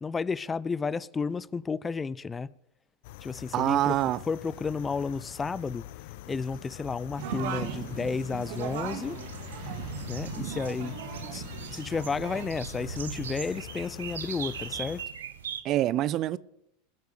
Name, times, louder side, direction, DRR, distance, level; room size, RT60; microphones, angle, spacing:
voice 1, 0.0-2.5 3.2-4.0 4.3-5.9 6.3-9.2 10.1-11.0 11.3-11.4 11.7-15.0, left 5 dB, 20° left, 0.5 m, -32 dB
sound 1, 3.0-15.0, left 16 dB, 65° left, 0.6 m, -44 dB
voice 2, 3.5-4.2 15.6-16.4, right 13 dB, 45° right, 0.6 m, -25 dB
sound 2, 7.2-12.5, right 9 dB, 65° right, 2.0 m, -38 dB
sound 3, 7.6-15.6, right 8 dB, 80° right, 1.1 m, -41 dB
21.5 x 8.2 x 8.0 m
hypercardioid pair, 85°, 0 cm